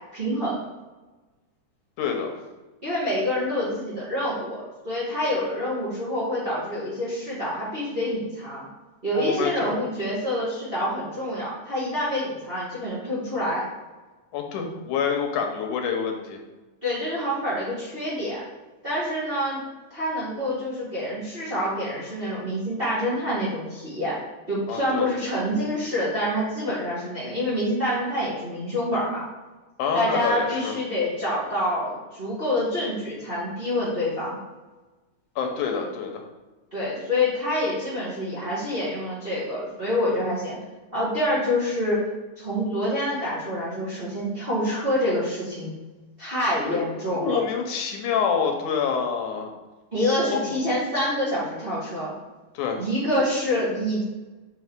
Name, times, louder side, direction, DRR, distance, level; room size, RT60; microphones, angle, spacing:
voice 1, 0.1-0.6 2.8-8.7 9.0-13.7 16.8-18.4 18.8-19.6 19.9-24.2 24.5-29.2 29.9-34.4 36.7-40.5 40.9-42.0 42.4-45.7 46.2-47.4 49.9-52.1 52.8-54.0, left 1 dB, 25° right, -9 dB, 1.6 m, -27 dB
voice 2, 2.0-2.3 9.1-9.7 14.3-16.4 24.7-25.1 29.8-30.7 35.4-36.2 46.7-46.8 47.1-49.5 50.3-50.4 52.6-52.8, left 6 dB, 85° left, 3 dB, 2.4 m, -27 dB
6.5 x 5.4 x 3.6 m, 1.2 s
omnidirectional pair, 3.5 m